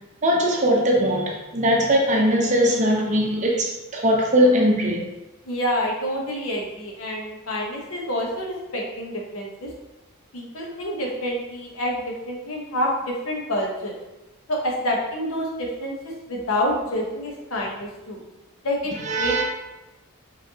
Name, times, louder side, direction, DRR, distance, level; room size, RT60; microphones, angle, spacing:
voice 1, 0.2-5.0 19.0-19.4, equal, 35° right, -1 dB, 0.7 m, -20 dB
voice 2, 5.5-9.7 10.3-13.9 14.5-18.2 18.6-19.4, equal, 70° left, -1 dB, 1.0 m, -28 dB
4.6 x 3.3 x 2.8 m, 1.0 s
head